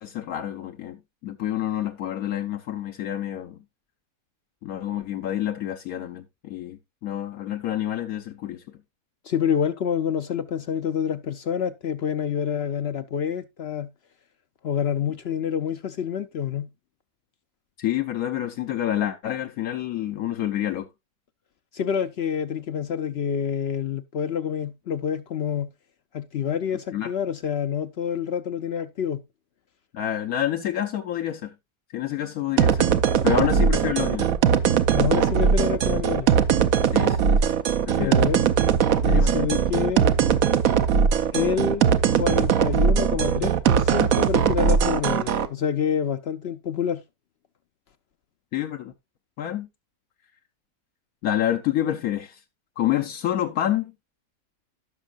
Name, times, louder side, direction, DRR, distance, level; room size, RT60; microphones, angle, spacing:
voice 1, 0.0-3.6 4.6-8.8 17.8-20.9 26.9-27.1 29.9-31.5 31.9-33.0 33.2-34.3 36.9-37.4 37.9-38.3 39.0-39.5 48.5-48.9 49.4-49.7 51.2-52.4 52.8-53.9, left 11 dB, 75° left, 1.2 m, -28 dB
voice 2, 9.3-13.9 14.6-16.7 21.7-25.7 26.1-29.2 34.9-36.3 37.9-38.4 39.0-40.1 41.3-41.9 42.1-47.0, left 8 dB, 60° left, 0.7 m, -27 dB
sound 1, 32.6-45.5, right 7 dB, 70° right, 1.1 m, -20 dB
16.0 x 6.2 x 2.3 m
omnidirectional pair, 1.5 m